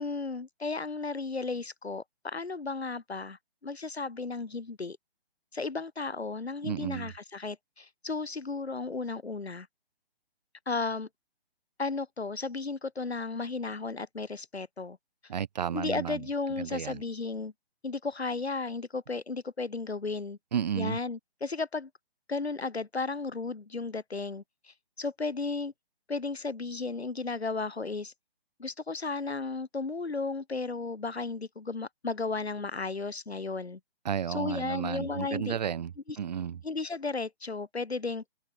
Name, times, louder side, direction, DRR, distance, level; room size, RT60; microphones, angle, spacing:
voice 1, 0.0-5.0 5.5-9.7 10.7-11.1 11.8-15.0 15.7-17.5 17.8-20.4 20.7-21.9 22.3-25.7 26.1-28.1 28.6-33.8 34.3-35.6 36.1-36.2 36.6-38.2, left 3 dB, 85° left, 2.7 m, -34 dB
voice 2, 6.6-7.1 15.3-16.2 16.6-17.0 20.5-21.0 34.0-35.9 36.2-36.6, right 8 dB, 45° right, 0.8 m, -32 dB
open air
figure-of-eight pair, 145°, 31 cm